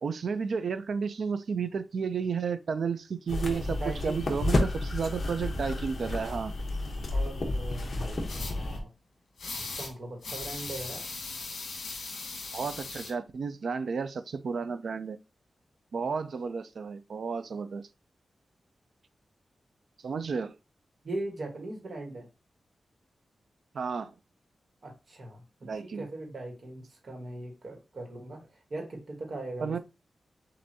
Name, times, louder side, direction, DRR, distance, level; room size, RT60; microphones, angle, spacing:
voice 1, 0.0-6.5 12.5-15.2 15.9-17.8 20.0-20.5 23.7-24.1 25.6-26.0 29.6-29.8, right 5 dB, 60° right, 0.4 m, -32 dB
sound 1, 3.3-8.8, left 2 dB, 45° left, 1.0 m, -31 dB
voice 2, 3.7-4.2 7.1-8.9 9.6-11.0 21.0-22.3 24.8-29.8, right 2 dB, 45° right, 1.5 m, -40 dB
sound 2, 8.3-8.5 9.4-9.9 10.2-13.1, left 3 dB, 65° left, 1.5 m, -38 dB
7.5 x 2.6 x 2.7 m
wide cardioid pair, 175°, 0 cm